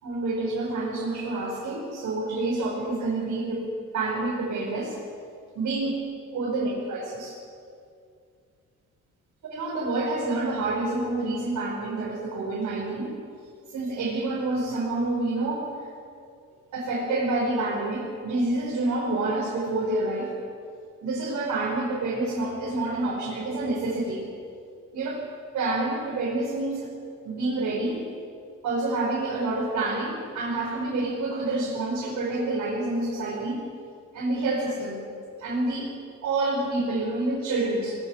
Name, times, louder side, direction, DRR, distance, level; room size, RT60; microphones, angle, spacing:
voice 1, 0.0-3.7 3.9-5.0 5.6-5.9 6.3-7.3 9.5-13.2 13.7-15.7 16.7-20.3 21.0-24.2 24.9-25.2 25.5-26.9 27.3-28.0 28.6-33.7 34.1-35.0 35.4-35.9 36.2-38.0, right 2 dB, 70° right, -5 dB, 5.5 m, -28 dB
21.5 x 20.5 x 6.6 m, 2.3 s
cardioid pair, 90°, 30 cm